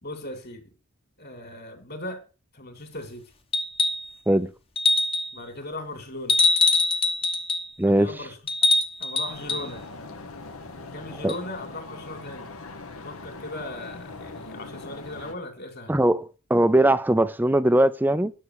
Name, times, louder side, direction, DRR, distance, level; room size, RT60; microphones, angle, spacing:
voice 1, 0.0-0.7 1.2-2.2 2.5-3.3 5.3-6.4 8.0-8.4 9.0-9.9 10.9-12.5 13.0-16.0, left 1 dB, 45° left, 3.0 m, -38 dB
sound 1, 3.5-4.1 4.8-5.4 6.3-7.7 8.5-9.7 11.3-11.4, left 3 dB, 25° left, 1.1 m, -23 dB
voice 2, 7.8-8.1 11.2-11.3 15.9-18.3, right 1 dB, 10° right, 0.5 m, -20 dB
sound 2, 9.3-15.3, left 3 dB, 80° left, 1.5 m, -41 dB
9.9 x 6.6 x 6.5 m
head